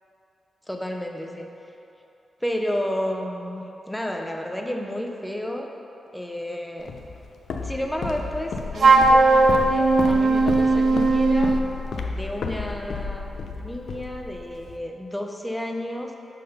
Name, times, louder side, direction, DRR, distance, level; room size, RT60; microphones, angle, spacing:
voice 1, 0.7-1.5 2.4-5.7 6.1-6.9 7.6-11.5 12.1-16.2, left 1 dB, 5° left, 1 dB, 0.5 m, -31 dB
Walk footsteps, 6.9-14.8, left 4 dB, 75° left, 0.5 m, -32 dB
Wind instrument woodwind instrument, 8.8-11.7, right 3 dB, 50° right, 0.4 m, -17 dB
6.6 x 3.8 x 5.3 m, 2.8 s
wide cardioid pair, 155°, 0 cm